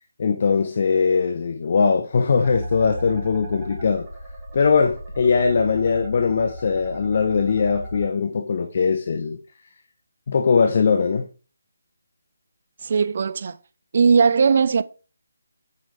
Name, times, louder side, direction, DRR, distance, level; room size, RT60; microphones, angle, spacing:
voice 1, 0.2-4.1 4.5-9.4 10.3-11.3, left 5 dB, 45° left, 0.8 m, -20 dB
sound 1, 2.4-8.1, equal, 5° right, 4.1 m, -35 dB
voice 2, 12.8-13.6 13.9-14.8, right 5 dB, 45° right, 0.5 m, -18 dB
8.4 x 5.6 x 3.3 m
figure-of-eight pair, 165°, 0 cm